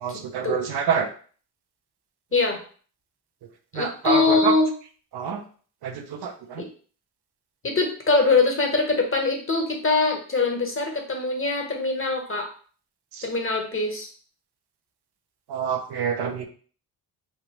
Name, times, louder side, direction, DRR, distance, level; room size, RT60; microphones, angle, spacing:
voice 1, 0.0-1.1 3.8-4.5 5.1-5.4 5.8-5.9 6.2-6.3 15.5-16.5, right 7 dB, 70° right, 4 dB, 0.7 m, -26 dB
voice 2, 3.7-4.7 6.6-6.7 7.6-12.5 13.2-14.1, left 3 dB, 30° left, 3 dB, 1.0 m, -23 dB
3.4 x 2.5 x 2.9 m, 0.42 s
cardioid pair, 65°, 42 cm